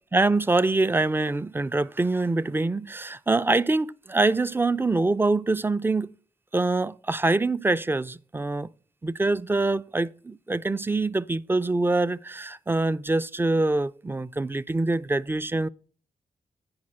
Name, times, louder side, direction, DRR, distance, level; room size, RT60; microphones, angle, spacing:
voice 1, 0.1-6.1 6.5-8.7 9.0-15.7, right 2 dB, 15° right, 0.4 m, -24 dB
9.6 x 5.4 x 6.4 m
cardioid pair, 65°, 14 cm